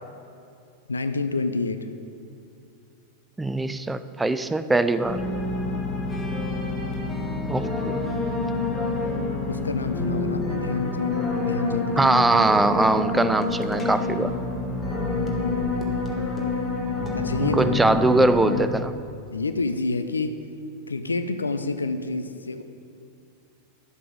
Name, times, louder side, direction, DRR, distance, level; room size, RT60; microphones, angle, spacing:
voice 1, 0.9-1.9 5.6-5.9 9.5-12.1 17.1-17.8 19.3-20.4 20.9-22.6, left 3 dB, 75° left, 10 dB, 0.5 m, -28 dB
voice 2, 3.4-5.2 7.5-8.0 12.0-14.3 17.4-18.9, right 2 dB, 10° right, 12 dB, 0.4 m, -22 dB
sound 1, 5.0-18.6, left 3 dB, 15° left, 1.7 m, -27 dB
11.0 x 7.6 x 5.1 m, 2.6 s
figure-of-eight pair, 90°, 0 cm